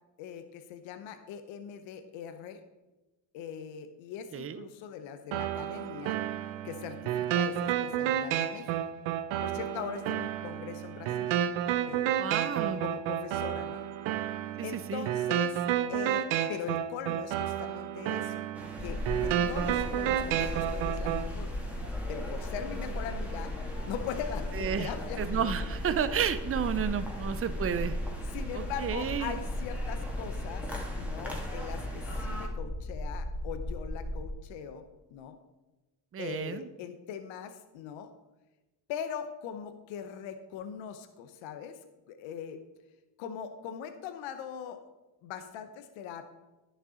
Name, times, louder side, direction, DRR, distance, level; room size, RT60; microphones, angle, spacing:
voice 1, 0.2-2.6 3.3-6.2 6.6-8.8 9.4-11.3 11.9-12.1 12.8-13.8 14.6-15.6 15.9-18.4 18.8-21.5 22.1-23.5 23.8-25.2 28.3-30.7 31.0-34.8 35.1-35.4 36.2-38.1 38.9-41.8 42.1-42.6 43.2-44.8 45.2-46.3, left 8 dB, 85° left, 8 dB, 0.8 m, -41 dB
voice 2, 4.3-4.7 12.2-12.8 14.6-15.1 24.5-24.9 25.2-28.0 28.5-29.4 36.1-36.7, right 8 dB, 30° right, 12 dB, 0.6 m, -32 dB
sound 1, 5.3-21.3, right 10 dB, 85° right, 0.7 m, -31 dB
sound 2, 18.5-32.5, equal, 5° right, 1.9 m, -43 dB
sound 3, 18.8-34.3, left 1 dB, 20° left, 0.9 m, -36 dB
10.5 x 6.6 x 3.8 m, 1.1 s
supercardioid pair, 75°, 45 cm